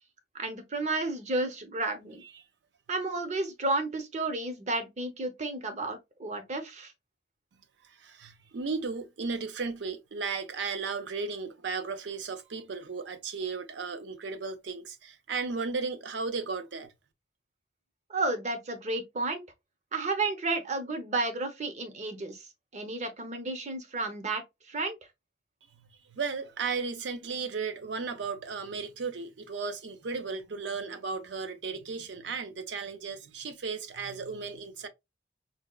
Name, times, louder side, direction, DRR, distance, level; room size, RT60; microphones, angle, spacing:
voice 1, 0.3-2.2 2.9-6.9 18.1-19.4 19.9-22.4 22.7-24.4 24.7-25.0, right 2 dB, 40° right, 0.7 m, -32 dB
voice 2, 8.0-16.9 26.1-34.9, right 4 dB, 85° right, 0.5 m, -35 dB
4.1 x 2.2 x 2.3 m
head